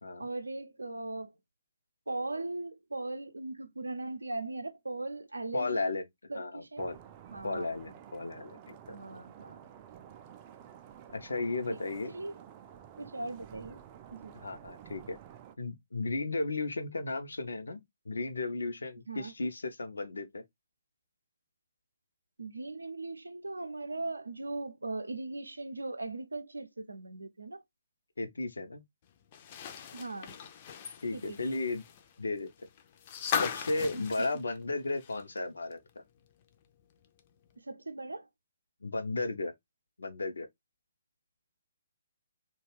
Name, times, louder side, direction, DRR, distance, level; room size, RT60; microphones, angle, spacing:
voice 1, 0.2-1.3 2.1-6.0 6.3-6.9 7.3-7.7 8.9-9.6 12.1-12.4 13.0-13.8 14.1-14.3 19.1-19.3 22.4-27.6 29.9-30.3 31.1-31.4 33.9-34.0 37.6-38.3, right 2 dB, 85° right, 0.5 m, -39 dB
voice 2, 5.5-6.0 6.3-7.0 7.4-9.0 11.1-12.1 14.4-15.2 15.6-17.8 18.1-20.4 28.2-28.8 31.0-31.8 32.2-32.5 33.4-35.8 38.8-39.5 40.0-40.5, left 3 dB, 75° left, 0.6 m, -34 dB
sound 1, 6.8-15.6, right 9 dB, 30° right, 0.4 m, -51 dB
sound 2, 29.3-35.4 35.7-35.8 37.2-37.3, left 8 dB, 35° left, 0.5 m, -38 dB
2.3 x 2.2 x 3.2 m
figure-of-eight pair, 135°, 0 cm